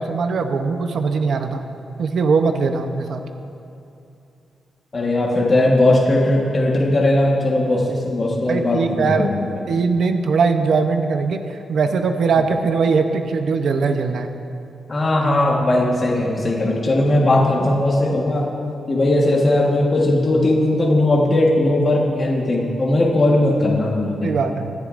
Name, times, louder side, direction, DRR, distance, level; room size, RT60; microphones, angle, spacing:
voice 1, 0.0-1.6 2.0-3.2 8.5-9.3 9.7-14.4 24.2-24.7, right 4 dB, 65° right, 6 dB, 0.7 m, -20 dB
voice 2, 4.9-9.4 14.9-18.5 18.9-24.4, left 1 dB, 30° left, -3 dB, 1.3 m, -18 dB
24.0 x 10.5 x 2.5 m, 2.7 s
wide cardioid pair, 145°, 0 cm